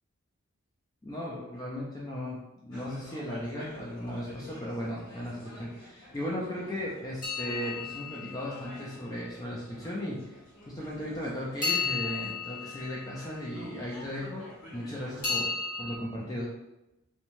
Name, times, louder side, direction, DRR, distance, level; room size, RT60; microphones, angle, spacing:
voice 1, 1.0-10.4 10.7-14.5 14.7-16.5, equal, 15° left, -4 dB, 0.3 m, -36 dB
sound 1, 2.7-15.5, left 1 dB, 85° left, 1.3 m, -49 dB
sound 2, 7.2-9.3 11.6-14.0 15.2-16.0, left 5 dB, 40° left, 1.0 m, -34 dB
3.0 x 2.1 x 2.6 m, 0.95 s
head